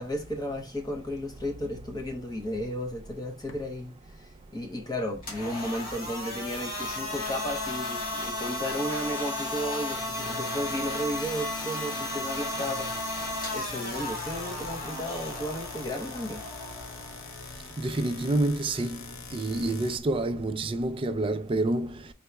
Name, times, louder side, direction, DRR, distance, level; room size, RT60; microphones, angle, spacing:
voice 1, 0.0-12.9 13.5-16.4, equal, 20° left, 0.8 m, -34 dB
sound 1, 3.5-3.7 9.8-20.0, left 4 dB, 85° left, 0.8 m, -43 dB
sound 2, 5.2-19.2, left 1 dB, 45° left, 2.3 m, -35 dB
voice 2, 17.8-19.0 19.3-21.9, right 2 dB, 25° right, 0.4 m, -28 dB
4.5 x 4.0 x 2.2 m
head